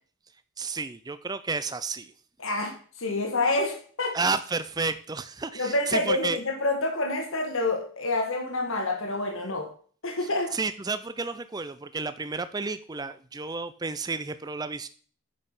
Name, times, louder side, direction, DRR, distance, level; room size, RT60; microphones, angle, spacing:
voice 1, 0.6-2.1 4.1-6.4 10.5-14.9, right 4 dB, 20° right, 12 dB, 0.4 m, -31 dB
voice 2, 2.4-4.2 5.5-9.7 10.0-10.5, left 2 dB, 65° left, 2 dB, 1.5 m, -28 dB
9.3 x 5.5 x 5.6 m, 0.43 s
head